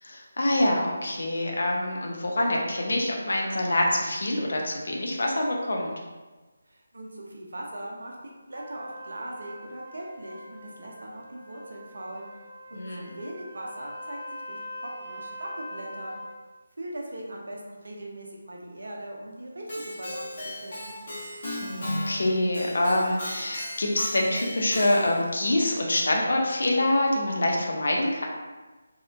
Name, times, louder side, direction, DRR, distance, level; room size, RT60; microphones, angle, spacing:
voice 1, 0.0-5.9 12.7-13.1 21.6-28.2, left 1 dB, 65° left, -1 dB, 0.5 m, -25 dB
voice 2, 6.7-12.3 12.7-16.1 16.8-21.1, right 1 dB, 70° right, -1 dB, 0.6 m, -40 dB
Trumpet, 8.5-16.4, equal, 45° right, 1.2 m, -43 dB
Keyboard (musical), 19.7-25.4, left 1 dB, 45° left, 1.0 m, -36 dB
2.7 x 2.1 x 2.5 m, 1.2 s
figure-of-eight pair, 160°, 0 cm